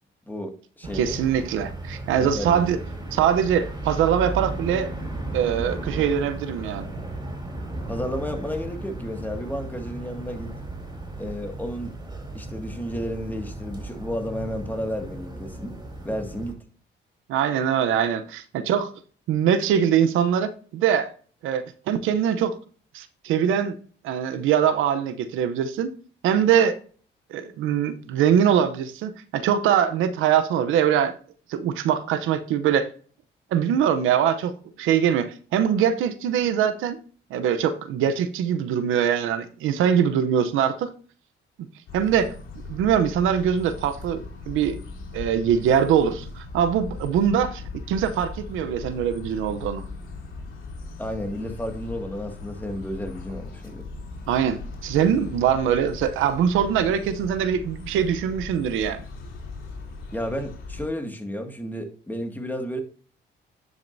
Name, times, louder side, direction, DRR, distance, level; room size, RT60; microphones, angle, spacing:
voice 1, 0.2-1.2 2.2-2.6 7.9-10.6 11.2-11.9 12.3-15.8 16.0-16.6 51.0-53.9 60.1-62.8, equal, 10° left, 2.0 m, -32 dB
Brussels Street Ambience, 0.8-16.5, right 2 dB, 20° right, 3.9 m, -35 dB
voice 2, 0.9-2.8 3.1-4.9 5.3-6.9 17.3-18.9 19.3-21.1 21.4-22.6 22.9-23.8 24.0-25.9 26.2-26.8 27.3-31.1 31.5-32.9 33.5-37.0 37.3-40.9 41.9-42.3 42.7-44.8 45.1-47.6 47.9-49.8 54.3-59.0, right 8 dB, 90° right, 0.8 m, -22 dB
sound 1, 41.9-60.9, left 3 dB, 80° left, 3.3 m, -38 dB
10.5 x 6.4 x 2.7 m
cardioid pair, 90°, 20 cm